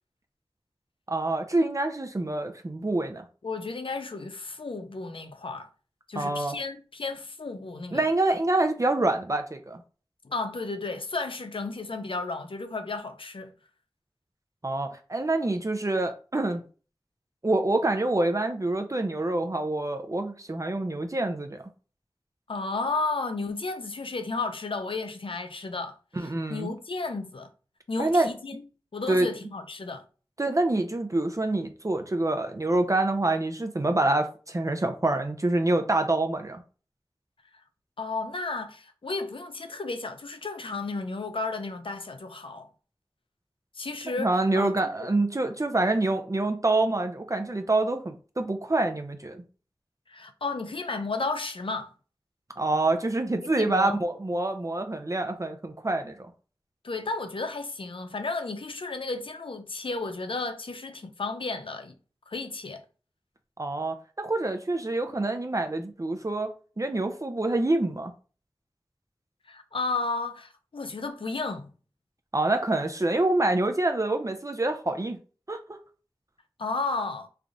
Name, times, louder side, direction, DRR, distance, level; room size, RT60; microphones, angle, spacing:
voice 1, 1.1-3.3 6.1-6.6 7.9-9.8 14.6-16.6 17.4-21.6 26.2-26.7 28.0-28.3 29.1-29.3 30.4-36.6 44.1-49.4 52.6-56.2 63.6-68.1 72.3-75.2 75.5-75.8, right 2 dB, 35° right, 0.5 m, -26 dB
voice 2, 3.4-5.7 6.1-8.0 10.2-13.5 22.5-27.5 27.9-28.6 28.9-30.0 38.0-42.7 43.7-44.7 50.1-51.9 53.4-54.0 56.8-61.9 62.3-62.8 69.5-71.7 76.6-77.3, left 3 dB, 75° left, 0.6 m, -33 dB
3.3 x 2.4 x 3.9 m
wide cardioid pair, 40°, 9 cm